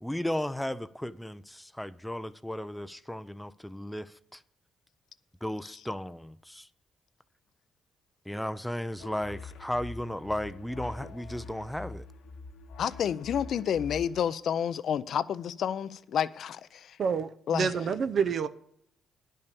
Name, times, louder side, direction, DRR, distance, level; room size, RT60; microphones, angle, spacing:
voice 1, 0.0-4.4 5.4-6.7 8.3-12.1, left 1 dB, 5° left, 0.4 m, -35 dB
sound 1, 9.0-14.2, left 3 dB, 90° left, 1.4 m, -44 dB
voice 2, 12.8-17.0 17.5-17.7, left 8 dB, 65° left, 0.5 m, -30 dB
voice 3, 17.0-18.5, right 6 dB, 55° right, 0.5 m, -28 dB
10.5 x 5.5 x 6.9 m
cardioid pair, 90°, 0 cm